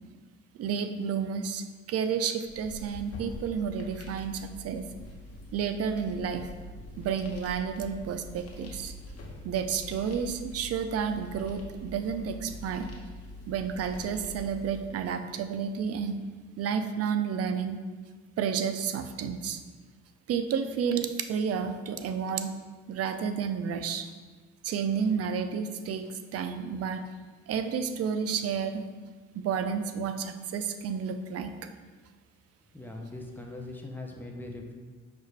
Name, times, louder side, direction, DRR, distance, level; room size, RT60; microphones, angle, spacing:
voice 1, 0.6-4.9 5.5-6.5 7.0-8.9 9.4-12.9 13.5-16.2 16.6-17.8 18.4-19.6 20.3-22.6 22.9-24.1 24.6-27.0 27.5-28.9 29.3-31.5, right 7 dB, 55° right, 8 dB, 0.4 m, -31 dB
sound 1, 2.4-14.9, left 1 dB, 50° left, 0.9 m, -44 dB
voice 2, 32.7-34.7, left 2 dB, 5° left, 1 dB, 0.5 m, -40 dB
5.4 x 2.4 x 3.3 m, 1.4 s
cardioid pair, 90°, 30 cm